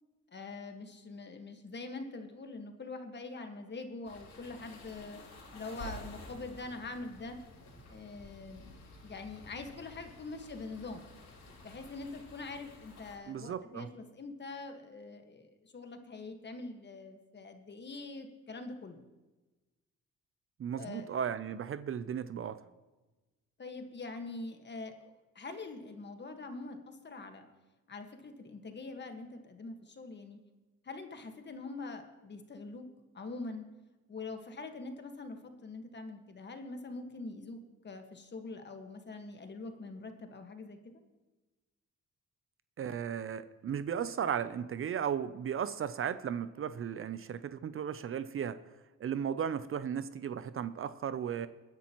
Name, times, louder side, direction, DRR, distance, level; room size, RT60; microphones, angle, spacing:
voice 1, 0.3-5.2 5.5-7.4 7.9-8.7 9.0-11.0 11.6-19.0 20.8-21.1 23.6-27.5 27.9-30.4 30.8-32.9 33.1-33.7 34.1-40.8, left 3 dB, 35° left, 5 dB, 1.6 m, -44 dB
sound 1, 4.0-13.2, left 1 dB, 65° left, 3.7 m, -51 dB
voice 2, 13.3-13.9 20.6-22.6 42.8-48.6 49.0-51.5, right 8 dB, 45° right, 13 dB, 0.6 m, -35 dB
21.5 x 10.5 x 3.0 m, 1.2 s
cardioid pair, 90°, 30 cm